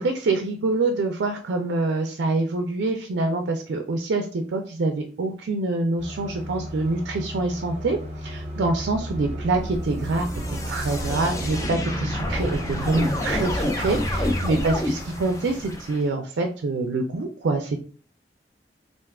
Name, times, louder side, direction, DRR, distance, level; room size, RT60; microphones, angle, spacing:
voice 1, 0.0-10.3 10.7-17.8, right 3 dB, 85° right, 4 dB, 0.4 m, -25 dB
sound 1, 6.0-15.8, right 1 dB, 35° right, 0.6 m, -34 dB
sound 2, 9.0-16.0, left 1 dB, 15° left, 0.4 m, -29 dB
2.5 x 2.2 x 3.5 m, 0.42 s
head